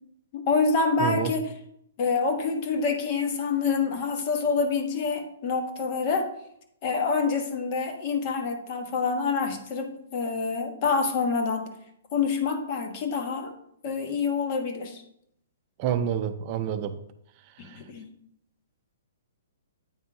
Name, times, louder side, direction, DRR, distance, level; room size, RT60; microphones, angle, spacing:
voice 1, 0.3-1.5 2.0-6.3 6.8-11.7 12.1-13.5 13.8-15.0 17.6-18.1, left 4 dB, 40° left, 5 dB, 1.2 m, -27 dB
voice 2, 1.0-1.3 15.8-17.0 17.6-17.8, right 9 dB, 35° right, 9 dB, 0.5 m, -28 dB
8.9 x 3.6 x 4.9 m, 0.75 s
hypercardioid pair, 140°, 0 cm